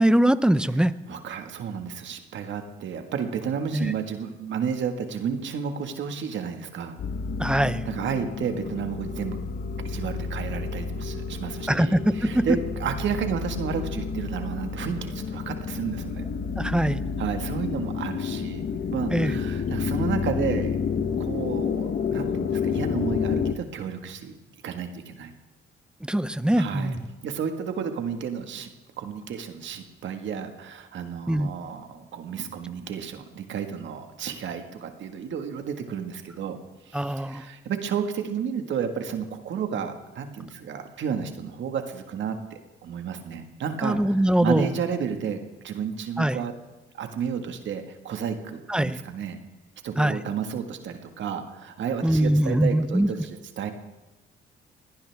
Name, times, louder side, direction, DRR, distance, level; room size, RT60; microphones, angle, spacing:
voice 1, 0.0-0.9 3.7-3.9 7.4-7.8 11.7-12.5 16.6-17.0 19.1-19.4 26.0-27.0 31.3-31.5 36.9-37.4 43.8-44.7 46.2-46.4 48.7-49.0 50.0-50.2 52.0-53.1, right 1 dB, 5° right, 15 dB, 0.7 m, -22 dB
voice 2, 1.1-7.0 7.9-9.4 9.8-16.2 17.2-18.6 18.9-20.8 21.2-24.4 24.6-25.3 26.6-27.0 27.2-28.7 29.0-36.6 36.9-45.4 45.6-46.5 46.9-49.4 49.8-53.7, right 7 dB, 70° right, 6 dB, 1.7 m, -32 dB
sound 1, 7.0-23.5, left 6 dB, 55° left, 1.1 m, -30 dB
21.5 x 18.0 x 3.5 m, 1.1 s
cardioid pair, 90°, 20 cm